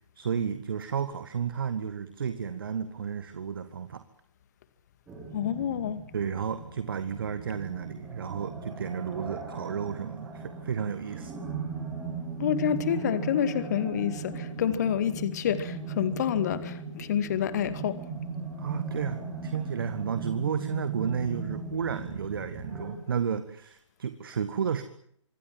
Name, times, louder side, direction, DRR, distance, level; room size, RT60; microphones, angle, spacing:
voice 1, 0.2-4.0 6.1-11.3 18.6-24.8, right 7 dB, 45° right, 1.9 m, -32 dB
sound 1, 5.1-22.9, right 4 dB, 10° right, 5.6 m, -38 dB
voice 2, 5.3-6.0 12.4-17.9, left 9 dB, 35° left, 2.2 m, -28 dB
26.5 x 22.0 x 7.6 m
figure-of-eight pair, 135°, 16 cm